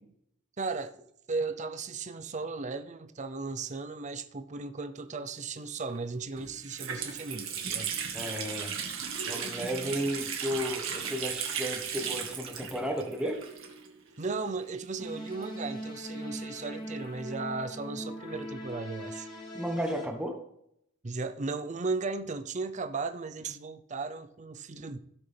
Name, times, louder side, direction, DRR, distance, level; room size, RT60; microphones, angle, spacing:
voice 1, 0.6-1.0 1.3-7.9 14.2-19.3 21.0-25.0, right 4 dB, 35° right, 0.6 m, -36 dB
Water tap faucet, 5.9-6.0 6.4-14.1 14.3-14.4 15.3-16.8, right 7 dB, 70° right, 1.7 m, -36 dB
voice 2, 8.1-8.7 9.3-13.4 19.5-20.4, equal, 5° right, 1.1 m, -33 dB
sound 1, 15.0-20.1, equal, 25° left, 2.2 m, -40 dB
16.0 x 6.2 x 3.4 m
head